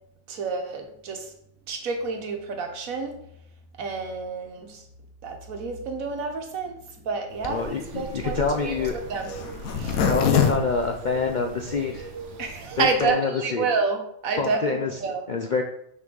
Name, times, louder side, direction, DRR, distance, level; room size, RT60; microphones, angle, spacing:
voice 1, 0.3-1.3 1.7-3.1 3.8-4.8 5.2-6.7 7.1-7.6 7.9-8.7 9.1-9.3 9.8-10.0 12.4-15.2, right 4 dB, 80° right, 4 dB, 1.4 m, -29 dB
Zipper (clothing), 7.4-11.7 12.2-12.3 12.5-12.6 12.8-13.1, left 7 dB, 90° left, 1.2 m, -26 dB
voice 2, 7.5-9.0 10.1-12.1 12.8-13.7 14.4-15.0 15.3-15.6, left 4 dB, 60° left, 4 dB, 0.5 m, -26 dB
sound 1, 7.6-12.9, right 4 dB, 60° right, 1.0 m, -39 dB
6.0 x 5.3 x 3.8 m, 0.72 s
omnidirectional pair, 1.4 m